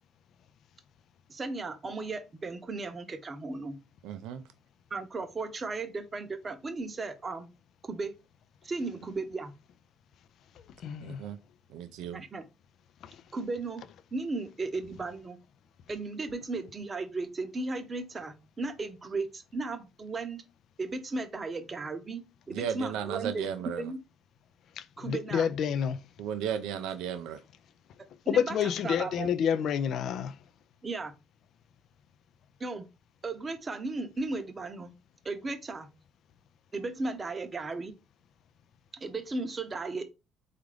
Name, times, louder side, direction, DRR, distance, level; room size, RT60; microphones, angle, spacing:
voice 1, 1.3-3.8 4.9-7.5 7.9-8.1 8.6-9.5 12.1-12.4 13.3-13.8 14.1-15.4 15.9-20.4 20.8-23.5 23.8-24.0 25.0-25.5 28.3-29.3 30.8-31.1 32.6-32.9 33.2-34.9 35.2-35.9 36.7-37.9 38.9-40.0, right 3 dB, 30° right, 0.7 m, -35 dB
voice 2, 4.0-4.4 11.0-11.4 11.7-12.2 22.5-23.9 26.2-27.4, right 8 dB, 75° right, 0.4 m, -35 dB
voice 3, 10.8-11.2 13.0-13.1 24.8-26.0 28.3-30.4, left 8 dB, 65° left, 0.3 m, -29 dB
3.7 x 2.4 x 3.1 m
supercardioid pair, 65°, 0 cm